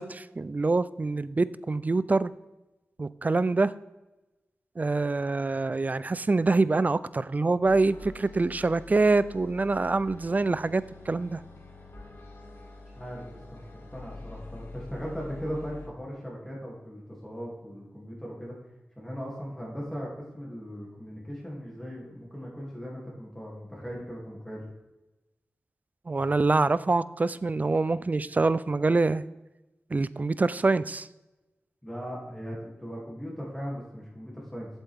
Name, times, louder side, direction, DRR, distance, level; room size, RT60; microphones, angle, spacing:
voice 1, 0.0-2.3 3.0-3.7 4.8-11.4 26.1-29.2 29.9-31.1, right 3 dB, 35° right, 17 dB, 0.4 m, -25 dB
sound 1, 7.6-15.9, left 3 dB, 60° left, 2.1 m, -46 dB
voice 2, 13.9-18.5 19.0-20.1 20.3-24.6 31.8-34.7, equal, 5° left, -4 dB, 2.7 m, -38 dB
8.2 x 7.7 x 3.5 m, 1.0 s
wide cardioid pair, 70°, 5 cm